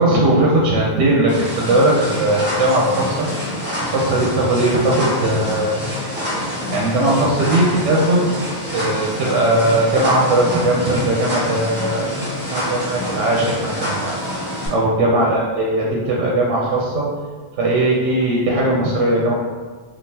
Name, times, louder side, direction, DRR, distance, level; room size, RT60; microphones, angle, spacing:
voice 1, 0.0-3.3 3.8-5.8 6.7-8.2 8.7-12.1 12.4-14.1 14.7-17.0 17.6-19.3, right 1 dB, 85° right, -3 dB, 0.9 m, -18 dB
sound 1, 1.3-14.7, left 1 dB, 10° right, 1.0 m, -26 dB
3.7 x 2.5 x 2.7 m, 1.4 s
omnidirectional pair, 1.2 m